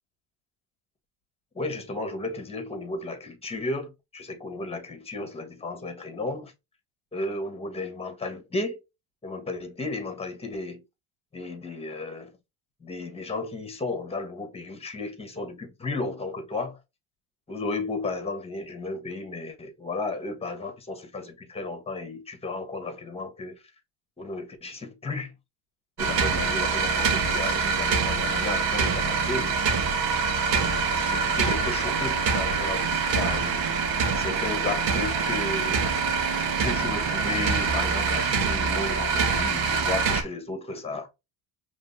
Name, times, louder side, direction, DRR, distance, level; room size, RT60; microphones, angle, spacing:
voice 1, 1.5-6.5 7.1-8.8 9.2-10.8 11.3-12.3 12.8-16.8 17.5-23.6 24.2-25.3 26.0-29.8 30.5-33.7 33.9-35.8 36.5-41.1, left 3 dB, 15° left, 1.3 m, -34 dB
sound 1, 26.0-40.2, right 5 dB, 80° right, 1.5 m, -25 dB
5.2 x 3.3 x 2.6 m
cardioid pair, 130°, 44 cm